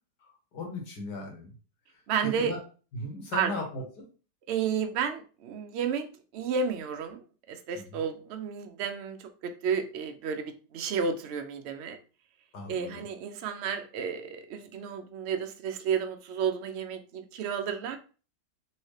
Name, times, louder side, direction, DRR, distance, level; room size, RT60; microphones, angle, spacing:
voice 1, 0.5-1.5 2.4-2.6 2.9-3.8 7.9-8.0 12.5-13.0, left 2 dB, 70° left, 0 dB, 1.8 m, -37 dB
voice 2, 2.1-2.5 3.3-3.6 4.5-6.1 6.3-7.2 7.5-12.0 12.7-18.0, right 6 dB, 80° right, 6 dB, 0.5 m, -32 dB
4.2 x 2.8 x 3.2 m, 0.37 s
omnidirectional pair, 1.8 m